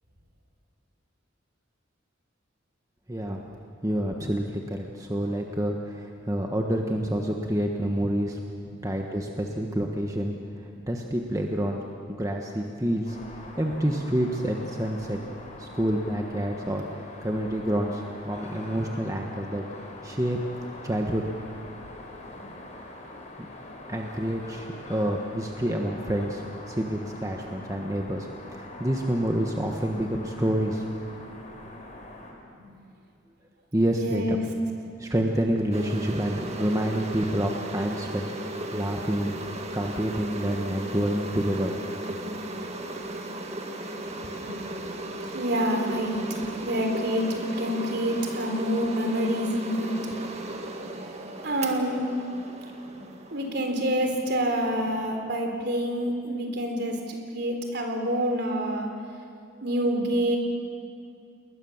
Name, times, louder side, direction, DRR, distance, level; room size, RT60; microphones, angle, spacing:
voice 1, 3.1-3.4 3.8-8.4 8.8-10.3 10.6-11.8 12.1-15.2 15.6-19.6 20.0-20.4 20.8-21.2 23.9-30.8 33.7-34.4 35.0-38.3 38.7-39.4 39.7-41.7, right 1 dB, 15° right, 1 dB, 1.3 m, -28 dB
sound 1, 13.0-32.3, left 2 dB, 35° left, 4.4 m, -43 dB
voice 2, 33.9-34.4 42.4-42.5 44.4-44.5 45.0-50.2 51.4-52.0 53.3-58.9 59.6-60.4, equal, 55° right, 3 dB, 3.9 m, -27 dB
sound 2, 35.7-54.2, right 1 dB, 35° right, 1.9 m, -36 dB
29.0 x 21.0 x 7.3 m, 2.4 s
head